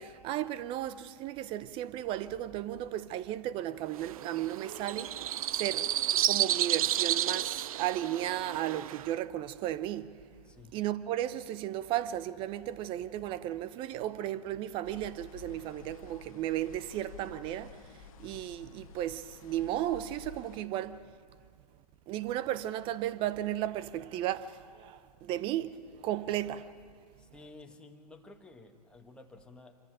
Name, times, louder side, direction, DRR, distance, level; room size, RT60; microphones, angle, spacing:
voice 1, 0.0-6.0 6.2-10.2 10.7-21.1 22.1-26.7, right 12 dB, 25° right, 0.8 m, -35 dB
sound 1, 3.9-9.1, right 12 dB, 60° right, 0.5 m, -31 dB
voice 2, 10.4-10.8 27.2-29.8, left 3 dB, 5° left, 1.5 m, -53 dB
sound 2, 14.8-20.6, left 9 dB, 55° left, 1.2 m, -51 dB
26.5 x 14.0 x 9.1 m
hypercardioid pair, 135°, 21 cm